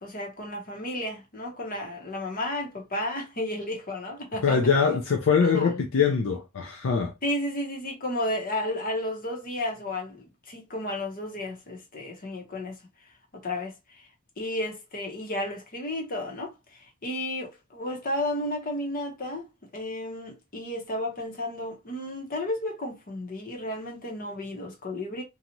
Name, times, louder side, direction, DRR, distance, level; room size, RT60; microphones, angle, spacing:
voice 1, 0.0-4.6 5.4-5.7 7.2-12.7 13.4-14.1 14.4-19.5 19.7-25.2, left 1 dB, 45° left, 1.0 m, -33 dB
voice 2, 4.4-7.1, left 5 dB, 65° left, 0.4 m, -23 dB
2.7 x 2.4 x 2.9 m
head